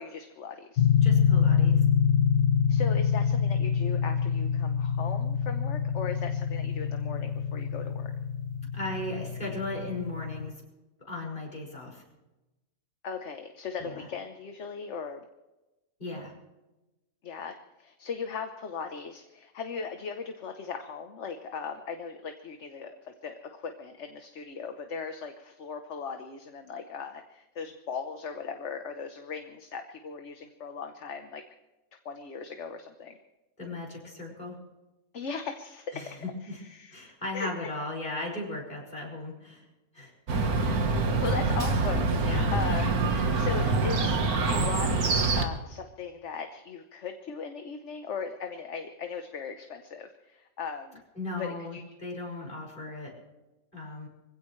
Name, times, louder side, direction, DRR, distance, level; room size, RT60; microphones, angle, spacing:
voice 1, 0.0-0.9 2.7-8.1 13.0-15.2 17.2-31.4 32.0-33.2 35.1-36.2 36.4-37.5 41.2-43.1 43.4-51.0 51.4-51.8, left 5 dB, 55° left, 6 dB, 1.3 m, -38 dB
sound 1, 0.8-10.5, left 7 dB, 70° left, 1.1 m, -26 dB
voice 2, 1.0-1.8 8.7-10.6 11.1-12.0 13.8-14.1 16.0-16.3 33.6-34.6 35.9-36.6 36.9-39.6 39.9-40.1 42.2-42.5 51.2-53.1 53.7-54.1, left 2 dB, 35° left, -2 dB, 6.1 m, -37 dB
Chirp tweet, 40.3-45.5, right 3 dB, 85° right, 1.9 m, -25 dB
24.5 x 16.5 x 3.2 m, 1.0 s
omnidirectional pair, 1.5 m